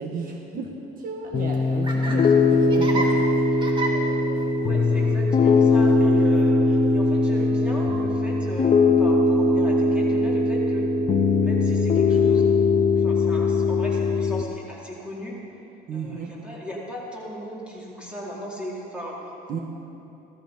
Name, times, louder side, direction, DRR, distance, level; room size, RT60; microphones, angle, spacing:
voice 1, 0.0-3.1 3.3-3.4 15.9-16.3 19.5-19.6, right 4 dB, 55° right, 1 dB, 1.5 m, -34 dB
Laughter, 1.2-8.8, right 1 dB, 30° right, 2.1 m, -35 dB
Piano, 1.3-14.4, left 3 dB, 45° left, 1.0 m, -20 dB
voice 2, 4.6-10.9 11.4-12.5 13.0-15.4 15.9-19.3, equal, 5° right, -5 dB, 3.9 m, -37 dB
16.5 x 13.5 x 5.4 m, 2.9 s
cardioid pair, 110°, 17 cm